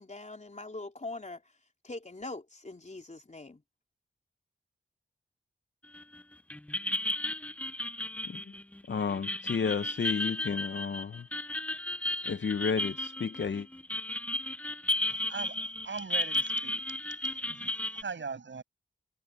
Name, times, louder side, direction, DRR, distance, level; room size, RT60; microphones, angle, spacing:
voice 1, 0.0-1.4 1.8-3.6, left 2 dB, 35° left, 3.7 m, -42 dB
sound 1, 5.9-6.2 6.5-18.0, left 1 dB, 5° left, 0.4 m, -34 dB
voice 2, 8.9-11.2 12.3-13.7, left 6 dB, 65° left, 0.8 m, -32 dB
voice 3, 15.1-18.6, right 5 dB, 65° right, 7.8 m, -41 dB
cardioid pair, 50°, 20 cm